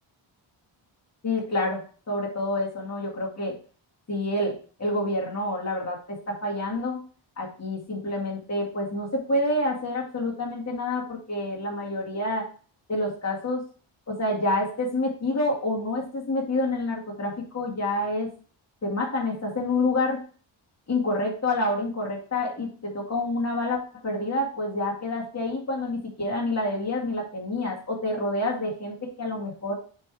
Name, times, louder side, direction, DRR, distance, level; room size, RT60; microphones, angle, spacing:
voice 1, 1.2-1.8 2.1-3.5 4.1-7.0 7.4-12.5 12.9-13.6 14.1-18.3 18.8-20.2 20.9-29.8, left 2 dB, 30° left, -2 dB, 1.9 m, -28 dB
7.5 x 3.6 x 4.7 m, 0.40 s
wide cardioid pair, 165°, 49 cm